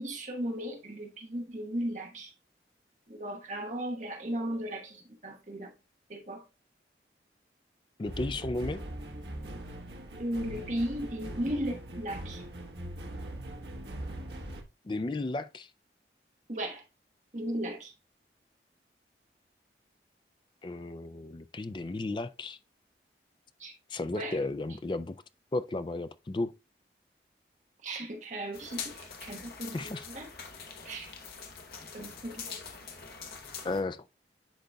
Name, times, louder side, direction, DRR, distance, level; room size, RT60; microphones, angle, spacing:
voice 1, 0.0-2.3 3.1-5.7 6.1-6.4 10.2-12.4 16.5-16.8 17.3-17.9 23.6-23.7 24.1-24.4 27.8-30.3 30.8-31.1 31.9-32.6, right 1 dB, 45° right, 1.2 m, -36 dB
voice 2, 8.0-8.8 14.8-15.7 20.6-22.6 23.9-25.2 25.5-26.5 29.7-30.0 33.6-34.0, left 2 dB, 25° left, 0.3 m, -34 dB
sound 1, 8.0-14.6, right 1 dB, 75° right, 1.2 m, -41 dB
sound 2, 28.5-33.8, left 6 dB, 60° left, 1.0 m, -44 dB
10.5 x 4.0 x 2.3 m
head